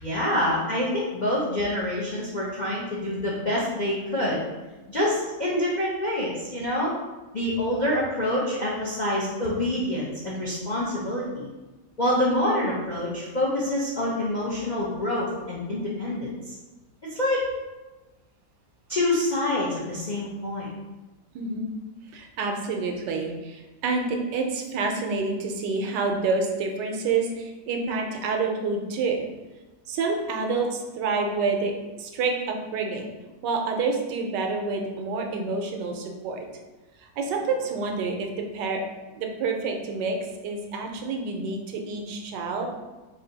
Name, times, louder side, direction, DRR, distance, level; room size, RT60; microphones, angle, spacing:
voice 1, 0.0-4.4 4.9-6.9 7.3-11.5 12.0-16.5 17.1-17.4 18.9-20.7, left 1 dB, 60° left, -7 dB, 0.4 m, -26 dB
voice 2, 21.3-21.7 22.1-29.2 29.9-33.1 33.4-36.5 37.0-38.8 39.2-40.2 40.4-42.8, right 4 dB, 85° right, 2 dB, 1.3 m, -28 dB
3.7 x 2.7 x 3.9 m, 1.2 s
omnidirectional pair, 1.8 m